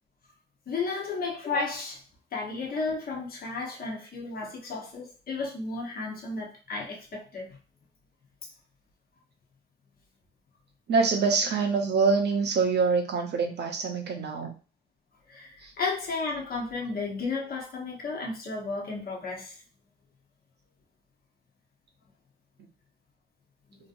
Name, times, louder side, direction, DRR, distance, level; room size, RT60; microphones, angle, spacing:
voice 1, 0.7-2.0 2.3-7.5 15.3-19.6, left 3 dB, 50° left, -2 dB, 1.0 m, -33 dB
voice 2, 10.9-14.5 15.6-15.7, right 4 dB, 60° right, 4 dB, 0.8 m, -25 dB
3.0 x 2.7 x 2.6 m, 0.35 s
cardioid pair, 90°, 20 cm